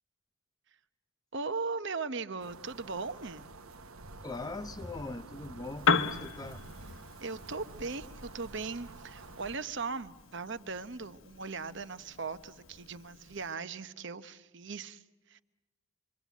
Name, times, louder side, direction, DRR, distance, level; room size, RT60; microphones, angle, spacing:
voice 1, 1.3-3.5 7.2-15.4, right 4 dB, 55° right, 0.9 m, -38 dB
sound 1, 2.4-9.6, right 2 dB, 80° right, 1.2 m, -49 dB
voice 2, 4.2-6.6 6.9-7.0, left 2 dB, 15° left, 0.8 m, -41 dB
Piano, 5.7-13.5, left 5 dB, 70° left, 1.1 m, -37 dB
27.0 x 24.0 x 8.3 m
head